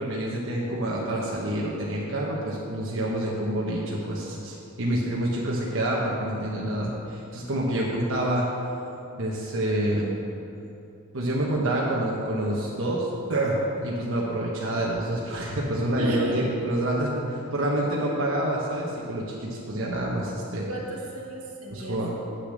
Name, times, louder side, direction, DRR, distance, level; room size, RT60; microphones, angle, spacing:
voice 1, 0.0-8.4 9.2-10.2 11.1-20.7 21.7-22.1, right 1 dB, 60° right, -4 dB, 1.2 m, -27 dB
voice 2, 16.0-16.4 20.7-22.1, right 2 dB, 85° right, -2 dB, 1.8 m, -35 dB
8.3 x 6.9 x 6.5 m, 2.7 s
head